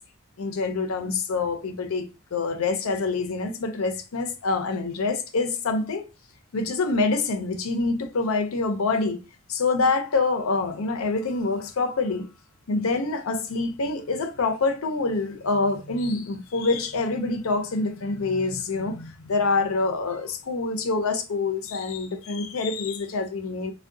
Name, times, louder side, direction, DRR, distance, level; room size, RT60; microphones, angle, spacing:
voice 1, 0.4-6.0 6.5-9.2 9.5-12.2 12.7-23.7, left 3 dB, 85° left, 0.6 m, -26 dB
3.4 x 2.2 x 2.6 m
head